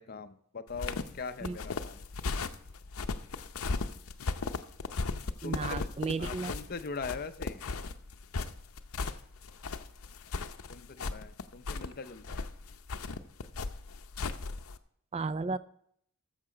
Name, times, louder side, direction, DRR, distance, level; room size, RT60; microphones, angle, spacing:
voice 1, 0.0-2.0 5.4-5.9 6.2-7.6 10.7-12.4, left 4 dB, 45° left, 0.6 m, -41 dB
sound 1, 0.7-14.8, left 4 dB, 80° left, 0.7 m, -37 dB
voice 2, 5.4-6.5 15.1-15.6, right 4 dB, 30° right, 0.3 m, -33 dB
13.5 x 7.3 x 5.0 m
head